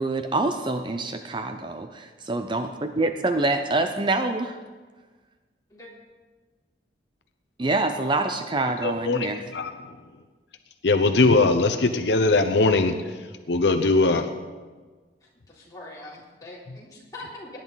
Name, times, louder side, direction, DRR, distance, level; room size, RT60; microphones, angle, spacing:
voice 1, 0.0-4.6 7.6-9.5, right 2 dB, 25° right, 7 dB, 0.5 m, -26 dB
voice 2, 8.8-9.3 9.5-9.7 10.8-12.9 13.5-14.2, left 3 dB, 75° left, 8 dB, 0.7 m, -20 dB
voice 3, 15.5-17.6, left 2 dB, 20° left, -6 dB, 3.6 m, -42 dB
18.0 x 10.5 x 4.0 m, 1.4 s
head